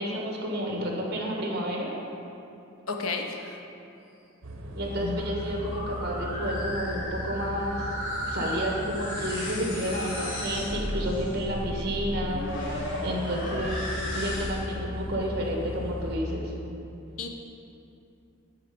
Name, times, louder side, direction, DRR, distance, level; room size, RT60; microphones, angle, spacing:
voice 1, 0.0-2.0 4.7-7.9 8.3-12.5 13.0-16.5, equal, 50° right, -1 dB, 1.6 m, -31 dB
voice 2, 2.9-3.6 13.4-13.6 17.2-17.3, left 4 dB, 90° left, 3 dB, 0.9 m, -33 dB
sound 1, 4.4-16.2, left 1 dB, 75° right, 0.9 m, -38 dB
sound 2, 4.8-14.8, left 1 dB, 60° left, 1.7 m, -35 dB
13.5 x 4.8 x 5.2 m, 2.8 s
head